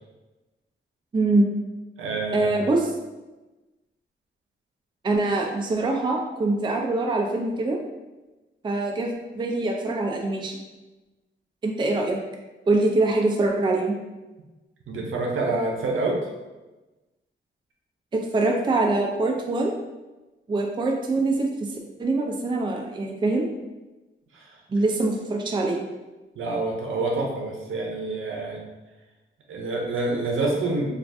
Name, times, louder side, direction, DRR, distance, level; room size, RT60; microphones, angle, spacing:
voice 1, 1.1-1.5 2.3-2.9 5.0-7.8 8.6-10.6 11.6-12.2 12.7-14.0 18.1-19.7 20.5-21.7 22.0-23.5 24.7-25.8, right 2 dB, 20° right, 1 dB, 0.4 m, -24 dB
voice 2, 2.0-2.5 14.9-16.2 24.3-24.5 26.4-28.6 29.5-30.9, right 2 dB, 75° right, -1 dB, 0.7 m, -27 dB
2.4 x 2.4 x 3.3 m, 1.1 s
cardioid pair, 90°, 21 cm